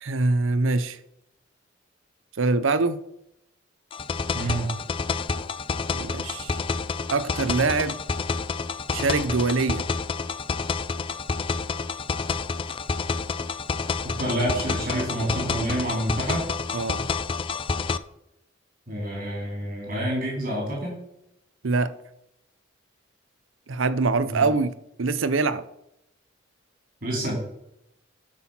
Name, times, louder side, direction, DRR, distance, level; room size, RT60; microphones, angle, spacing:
voice 1, 0.0-1.0 2.4-3.0 5.9-6.6 7.1-8.0 8.9-9.8 16.7-17.1 21.6-21.9 23.7-25.7, right 3 dB, 80° right, 0.7 m, -24 dB
sound 1, 3.9-18.0, left 4 dB, 25° left, 0.4 m, -29 dB
voice 2, 4.3-4.7 14.2-16.4 18.9-20.9 24.0-24.4 27.0-27.3, right 1 dB, 45° right, 4.0 m, -28 dB
12.5 x 6.2 x 5.8 m
head